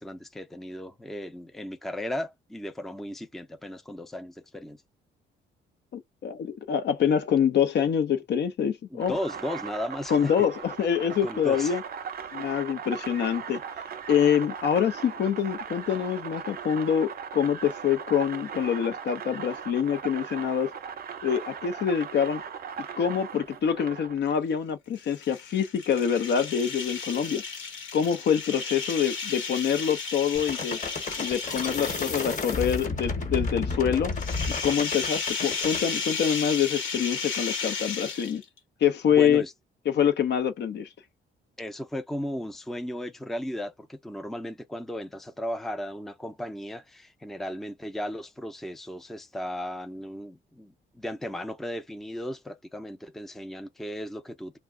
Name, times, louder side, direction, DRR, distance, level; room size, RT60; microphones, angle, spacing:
voice 1, 0.0-4.8 8.9-10.3 11.0-11.7 39.1-39.5 41.6-54.6, left 1 dB, ahead, 0.5 m, -35 dB
voice 2, 5.9-9.1 10.1-11.8 12.3-13.6 14.1-20.7 21.2-22.4 23.0-27.4 27.9-30.8 31.2-34.1 34.6-38.4 38.8-39.4 39.9-40.9, left 8 dB, 60° left, 0.6 m, -25 dB
sound 1, 9.0-24.2, right 7 dB, 50° right, 0.6 m, -38 dB
sound 2, 25.0-32.7 34.1-38.6, left 5 dB, 85° left, 1.1 m, -34 dB
sound 3, 30.3-35.8, left 3 dB, 40° left, 1.2 m, -32 dB
2.3 x 2.1 x 3.6 m
cardioid pair, 90°, 20 cm